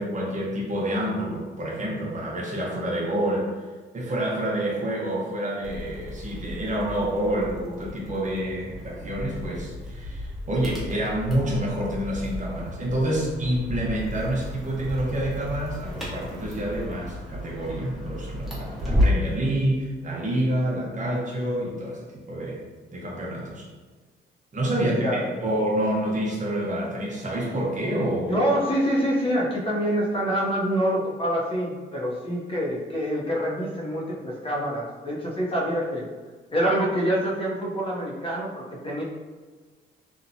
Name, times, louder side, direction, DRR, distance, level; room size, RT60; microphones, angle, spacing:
voice 1, 0.0-3.5 3.9-22.6 22.9-23.7 24.5-28.4, right 1 dB, 40° right, -4 dB, 0.8 m, -28 dB
sound 1, 5.6-19.4, left 1 dB, ahead, 0.9 m, -32 dB
voice 2, 24.8-25.4 28.3-36.1 36.5-39.0, equal, 30° left, -4 dB, 0.7 m, -26 dB
2.8 x 2.1 x 2.6 m, 1.4 s
cardioid pair, 90°, 20 cm